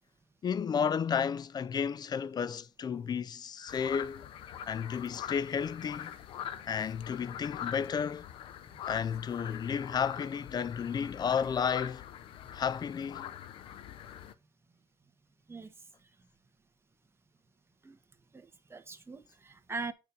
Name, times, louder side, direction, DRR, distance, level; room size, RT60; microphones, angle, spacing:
voice 1, 0.4-6.2 6.7-8.3 8.8-12.0 12.5-13.3, left 7 dB, 50° left, 0.5 m, -32 dB
sound 1, 3.7-14.3, left 10 dB, 90° left, 0.8 m, -43 dB
voice 2, 18.3-19.9, right 4 dB, 30° right, 1.6 m, -41 dB
8.8 x 4.4 x 5.3 m
cardioid pair, 75°, 9 cm